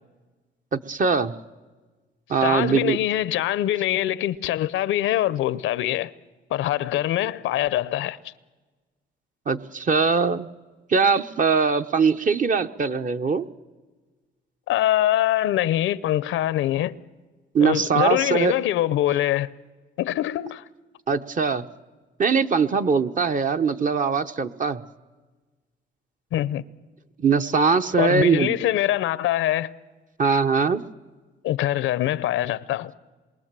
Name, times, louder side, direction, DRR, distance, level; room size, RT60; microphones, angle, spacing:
voice 1, 0.7-1.3 2.3-3.0 9.5-10.5 10.9-13.5 17.5-18.6 21.1-21.7 22.2-24.8 27.2-28.6 30.2-30.8, right 5 dB, 40° right, 0.9 m, -21 dB
voice 2, 2.4-6.1 6.5-8.3 14.7-17.0 17.6-19.5 20.0-20.7 26.3-26.6 28.0-29.7 31.4-32.9, left 13 dB, 85° left, 0.7 m, -24 dB
27.0 x 22.0 x 7.5 m
cardioid pair, 90°, 20 cm